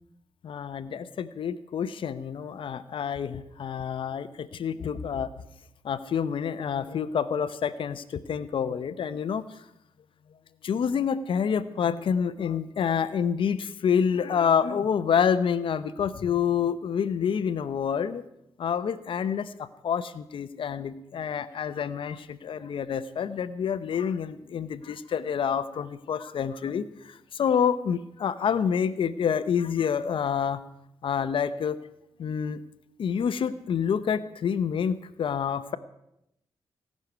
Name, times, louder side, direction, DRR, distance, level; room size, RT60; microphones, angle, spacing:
voice 1, 0.4-5.3 5.8-9.4 10.6-18.2 18.6-30.6 31.0-31.8 32.2-32.6 33.0-35.8, left 7 dB, 70° left, 13 dB, 0.8 m, -28 dB
18.0 x 6.5 x 9.3 m, 0.82 s
cardioid pair, 80°, 9 cm